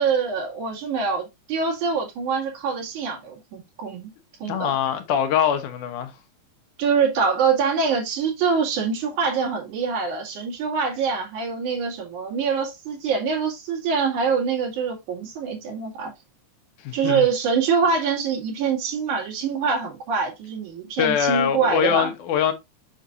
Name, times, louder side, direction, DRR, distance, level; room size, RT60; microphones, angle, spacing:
voice 1, 0.0-4.1 4.4-4.7 6.8-16.1 16.9-22.1, right 5 dB, 70° right, 3.6 m, -24 dB
voice 2, 4.5-6.1 16.8-17.3 21.0-22.5, left 9 dB, 75° left, 2.6 m, -23 dB
7.2 x 6.1 x 2.6 m
omnidirectional pair, 3.6 m